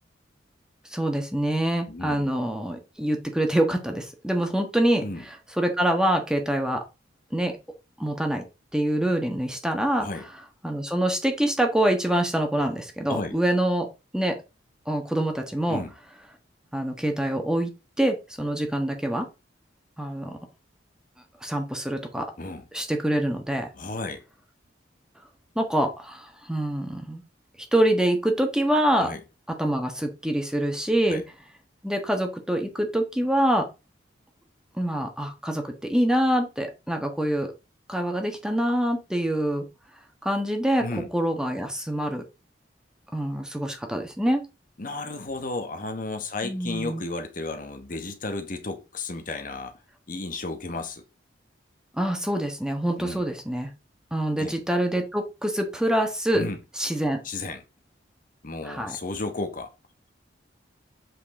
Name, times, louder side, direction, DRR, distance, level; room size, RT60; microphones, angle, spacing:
voice 1, 0.9-6.8 7.3-7.6 8.0-8.4 8.7-10.1 10.6-13.9 14.1-14.4 14.9-15.8 16.7-17.7 18.0-19.3 20.0-20.4 21.4-22.3 22.7-23.7 25.5-27.2 27.7-29.1 29.5-31.2 31.8-33.7 34.8-37.5 37.9-39.7 40.2-40.9 41.1-42.2 43.1-44.4 46.4-47.0 51.9-53.7 54.1-56.4 56.8-57.2 58.6-59.0, right 1 dB, 5° right, 1.4 m, -25 dB
voice 2, 1.9-2.3 5.0-5.2 10.0-10.2 13.1-13.3 15.7-15.9 22.4-22.7 23.7-24.2 29.0-29.2 31.1-31.2 40.8-41.1 44.8-49.7 50.1-51.0 53.0-53.2 54.3-54.5 56.3-56.6 57.2-57.6 58.4-59.7, left 2 dB, 45° left, 1.1 m, -33 dB
7.8 x 5.3 x 3.8 m
head